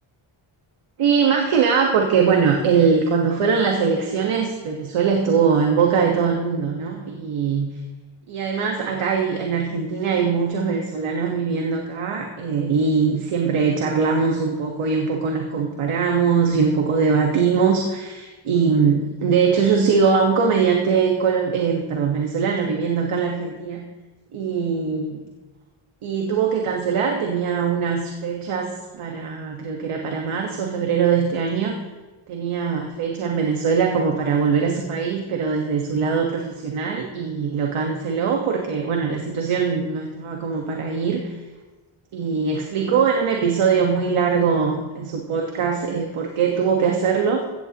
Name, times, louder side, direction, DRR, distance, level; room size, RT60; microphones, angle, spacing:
voice 1, 1.0-7.7 8.3-23.8 24.3-25.3 26.0-31.8 32.3-41.4 42.1-47.4, right 6 dB, 75° right, 1 dB, 1.5 m, -21 dB
16.0 x 15.0 x 3.0 m, 1.2 s
wide cardioid pair, 145°, 50 cm